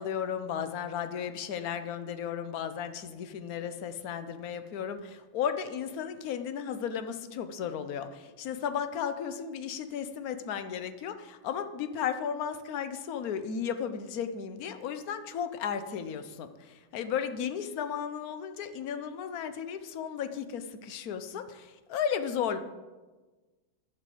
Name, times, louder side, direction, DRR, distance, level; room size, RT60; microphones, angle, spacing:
voice 1, 0.0-22.6, left 8 dB, 60° left, 10 dB, 1.0 m, -34 dB
11.0 x 6.2 x 7.7 m, 1.3 s
omnidirectional pair, 2.2 m